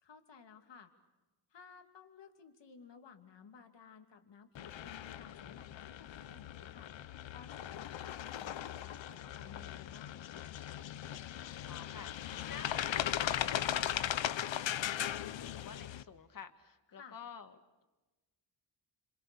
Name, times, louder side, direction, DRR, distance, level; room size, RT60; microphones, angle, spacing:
voice 1, 0.0-0.9 1.5-6.9 7.3-10.5 16.9-17.2, left 6 dB, 70° left, 6 dB, 2.8 m, -56 dB
sound 1, 4.6-16.0, left 11 dB, 90° left, 0.9 m, -38 dB
voice 2, 11.7-17.5, left 6 dB, 50° left, 8 dB, 2.0 m, -51 dB
30.0 x 27.0 x 6.9 m, 1.1 s
wide cardioid pair, 170°, 44 cm